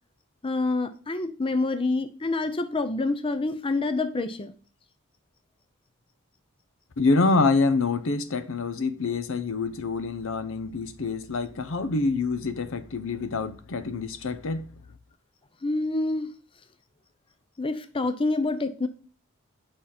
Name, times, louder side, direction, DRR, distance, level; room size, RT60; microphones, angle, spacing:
voice 1, 0.4-4.5 15.6-16.3 17.6-18.9, left 3 dB, 25° left, 0.6 m, -27 dB
voice 2, 7.0-14.6, left 3 dB, 65° left, 0.7 m, -26 dB
8.9 x 5.7 x 4.2 m
head